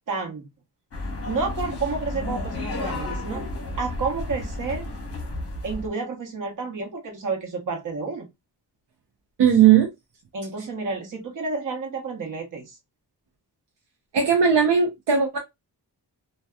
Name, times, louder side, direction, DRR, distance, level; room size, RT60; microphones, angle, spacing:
voice 1, 0.1-0.5 1.3-3.4 3.8-4.8 5.6-8.3 10.3-12.8, right 4 dB, 50° right, 1.0 m, -30 dB
sound 1, 0.9-5.9, left 2 dB, 35° left, 0.8 m, -32 dB
voice 2, 9.4-9.9 14.1-15.4, right 8 dB, 75° right, 0.6 m, -17 dB
2.6 x 2.2 x 2.2 m
wide cardioid pair, 155°, 42 cm